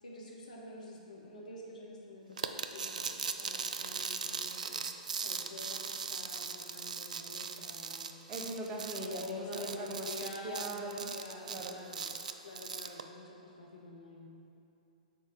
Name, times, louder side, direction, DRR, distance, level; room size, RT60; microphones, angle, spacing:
voice 1, 0.0-8.2 9.0-12.1 12.4-14.3, left 2 dB, 65° left, -2 dB, 1.2 m, -47 dB
sound 1, 2.4-13.0, right 5 dB, 65° right, 0.3 m, -39 dB
voice 2, 8.3-11.1 11.5-11.8, right 2 dB, 25° right, 0 dB, 0.7 m, -40 dB
6.3 x 4.4 x 4.9 m, 2.8 s
figure-of-eight pair, 110°, 4 cm